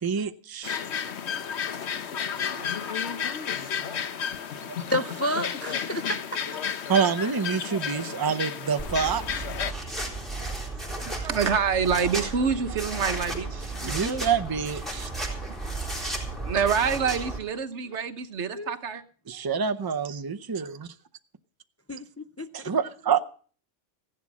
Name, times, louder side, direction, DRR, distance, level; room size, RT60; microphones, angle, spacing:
voice 1, 0.0-0.8 2.5-2.6 3.1-3.3 6.9-9.2 13.8-15.1 19.3-20.9 22.5-23.2, right 6 dB, 25° right, 0.6 m, -27 dB
sound 1, 0.6-9.7, left 8 dB, 65° left, 1.1 m, -32 dB
voice 2, 4.6-6.1 18.5-18.7 21.9-22.7, equal, 25° left, 0.3 m, -31 dB
sound 2, 8.8-17.4, right 2 dB, ahead, 4.0 m, -34 dB
voice 3, 11.1-14.3 16.4-19.0, right 6 dB, 65° right, 1.3 m, -27 dB
15.5 x 11.0 x 6.2 m
omnidirectional pair, 1.3 m